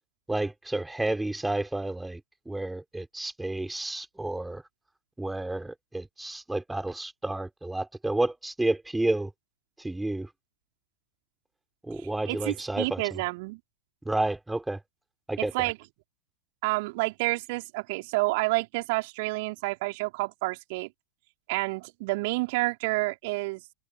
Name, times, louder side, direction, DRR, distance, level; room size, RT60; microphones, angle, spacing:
voice 1, 0.3-2.2 2.5-4.6 5.2-9.3 9.8-10.3 11.8-13.2 14.1-14.8 15.3-15.7, right 2 dB, 5° right, 4.0 m, -30 dB
voice 2, 12.0-13.6 15.4-15.8 16.6-20.9 21.5-23.6, right 25 dB, 50° right, 3.6 m, -29 dB
figure-of-eight pair, 90°, 0 cm